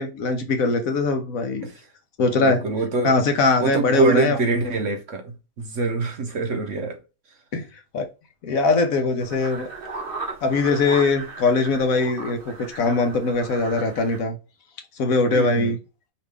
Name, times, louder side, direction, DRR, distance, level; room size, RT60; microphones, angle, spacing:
voice 1, 0.0-1.7 2.2-2.6 3.0-4.4 7.5-8.0 8.4-9.7 10.4-14.4 14.9-15.8, left 3 dB, 60° left, 1.2 m, -21 dB
voice 2, 2.4-3.1 3.6-7.0 15.3-15.7, right 3 dB, 55° right, 1.0 m, -24 dB
sound 1, 9.2-14.2, right 3 dB, 35° right, 1.4 m, -36 dB
5.3 x 2.9 x 3.4 m
omnidirectional pair, 1.8 m